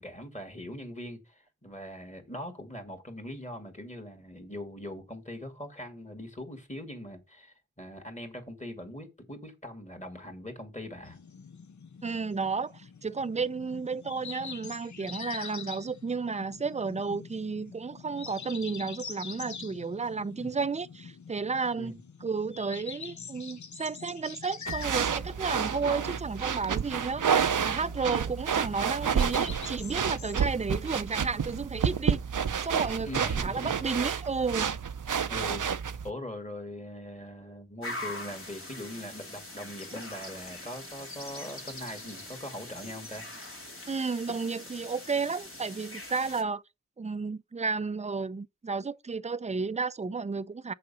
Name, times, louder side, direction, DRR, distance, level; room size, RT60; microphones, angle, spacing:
voice 1, 0.0-11.2 20.4-20.5 21.8-21.9 33.0-33.7 35.3-35.7 36.0-43.2, left 1 dB, 25° left, 2.2 m, -41 dB
sound 1, 11.0-30.6, left 6 dB, 70° left, 0.6 m, -45 dB
voice 2, 12.0-32.2 32.6-34.7 43.9-46.6 47.0-50.7, right 4 dB, 25° right, 0.4 m, -32 dB
sound 2, 24.7-36.1, right 7 dB, 90° right, 0.5 m, -29 dB
sound 3, 37.8-46.4, left 1 dB, 45° left, 2.3 m, -42 dB
6.7 x 5.0 x 5.6 m
wide cardioid pair, 40°, 30 cm